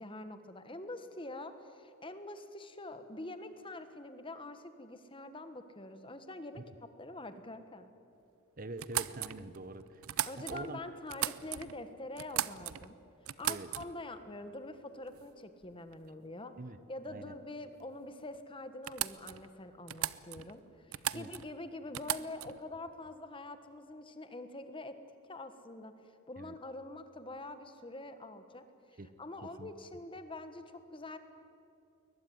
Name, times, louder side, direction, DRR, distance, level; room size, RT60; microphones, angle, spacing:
voice 1, 0.0-7.9 10.2-13.0 13.2-16.6 16.9-25.0 25.3-25.9 26.3-31.2, left 2 dB, 25° left, 9 dB, 1.3 m, -45 dB
voice 2, 8.6-10.0 10.3-10.8 13.5-13.7 16.6-16.8 17.1-17.4 21.1-21.3 26.4-26.5 29.0-29.1 29.4-29.7, right 2 dB, 40° right, 12 dB, 1.0 m, -44 dB
sound 1, 8.8-10.7 11.1-11.8 12.2-12.9 13.3-14.1 15.1-15.3 15.6-16.0 18.0-18.1 18.3-18.4 18.8-19.5 19.9-20.6 20.9-21.5 21.9-22.6, right 12 dB, 75° right, 0.7 m, -37 dB
22.0 x 20.5 x 9.4 m, 2.6 s
head